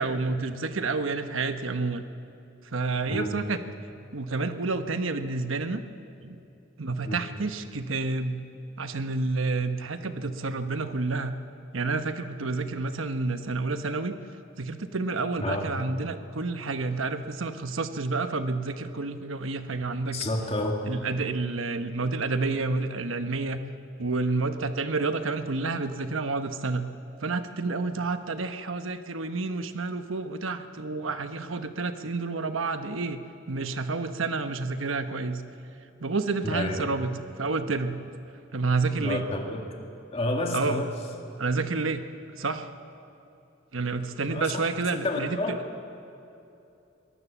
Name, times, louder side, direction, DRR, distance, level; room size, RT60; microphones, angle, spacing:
voice 1, 0.0-2.1 2.7-3.6 4.1-5.8 6.2-6.4 6.8-8.4 8.8-11.4 11.7-14.2 14.6-20.2 20.9-23.6 24.0-26.9 27.2-33.2 33.5-35.4 36.0-38.1 38.5-39.2 40.5-40.8 41.4-42.0 42.3-42.7 43.7-45.8, right 3 dB, 80° right, 9 dB, 1.1 m, -29 dB
voice 2, 3.1-3.4 7.0-7.2 15.4-15.8 20.1-20.7 36.4-36.9 39.0-39.6 40.1-40.9 44.3-45.5, left 1 dB, 30° left, 1 dB, 2.2 m, -30 dB
22.5 x 18.5 x 7.3 m, 2.8 s
head